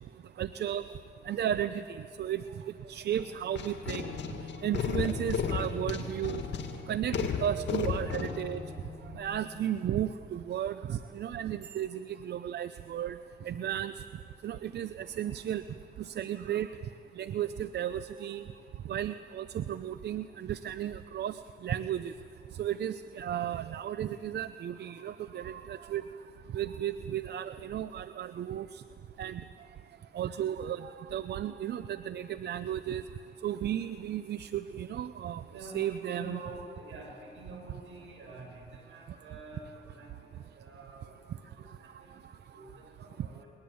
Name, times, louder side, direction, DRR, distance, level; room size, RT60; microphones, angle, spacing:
voice 1, 0.4-0.8 1.3-2.4 2.9-4.1 4.6-6.4 6.9-8.6 9.2-13.2 13.4-13.9 14.4-15.6 16.0-16.7 17.2-18.4 18.9-22.1 22.6-26.0 26.5-28.8 29.2-29.4 30.1-33.0 33.4-36.5, right 10 dB, 55° right, 13 dB, 0.6 m, -34 dB
sound 1, 3.1-9.6, left 6 dB, 65° left, 2.1 m, -34 dB
voice 2, 35.5-40.3 40.6-41.1 41.8-42.1 42.5-43.5, right 2 dB, 75° right, 1 dB, 7.0 m, -47 dB
21.5 x 20.5 x 8.6 m, 2.7 s
cardioid pair, 90°, 20 cm